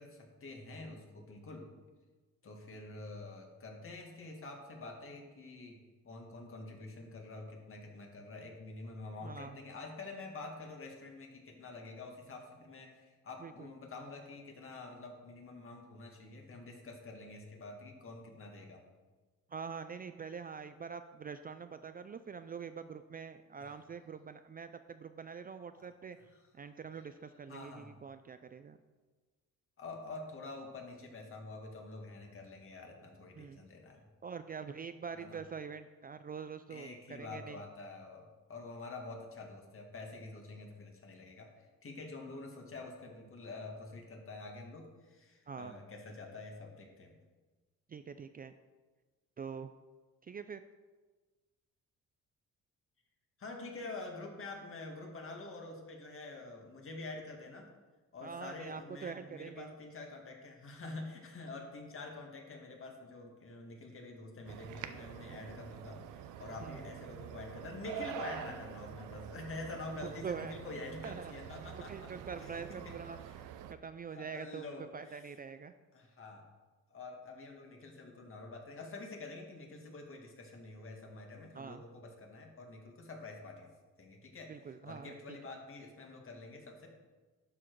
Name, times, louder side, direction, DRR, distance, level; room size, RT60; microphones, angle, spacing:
voice 1, 0.0-1.7 2.4-18.8 23.6-23.7 25.8-25.9 27.5-28.0 29.8-34.1 35.2-35.4 36.7-41.5 41.8-47.1 53.4-57.7 58.1-72.1 72.4-73.0 73.2-73.4 74.1-75.2 75.9-76.4 76.9-83.7 84.0-86.9, left 3 dB, 45° left, 2 dB, 1.9 m, -47 dB
voice 2, 9.2-9.6 13.4-13.7 19.5-26.2 26.5-28.8 33.4-33.6 34.2-37.6 45.5-45.7 47.9-48.5 49.4-49.7 50.2-50.6 58.2-59.7 66.6-66.8 70.0-70.5 71.0-71.3 71.7-73.2 73.7-74.7 74.9-75.7 81.5-81.8 84.5-85.4, right 6 dB, 30° right, 10 dB, 0.4 m, -44 dB
sound 1, 64.5-73.7, right 9 dB, 85° right, 0.6 m, -46 dB
12.0 x 4.8 x 4.6 m, 1.3 s
cardioid pair, 90°, 30 cm